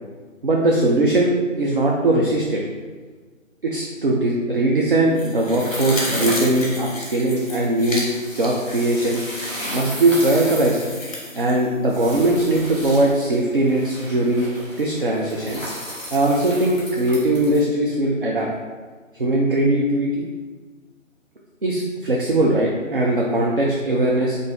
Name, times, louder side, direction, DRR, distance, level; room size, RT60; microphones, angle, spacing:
voice 1, 0.4-2.6 3.6-8.1 8.3-9.2 9.7-10.9 11.4-14.5 14.8-15.6 16.1-18.5 19.1-20.3 21.6-24.4, right 1 dB, 45° right, -2 dB, 0.4 m, -20 dB
sound 1, 5.1-12.6 13.0-13.1, left 1 dB, 25° left, 0.8 m, -34 dB
sound 2, 5.6-17.6, equal, 5° right, 1.1 m, -34 dB
5.4 x 2.6 x 3.4 m, 1.4 s
figure-of-eight pair, 150°, 40 cm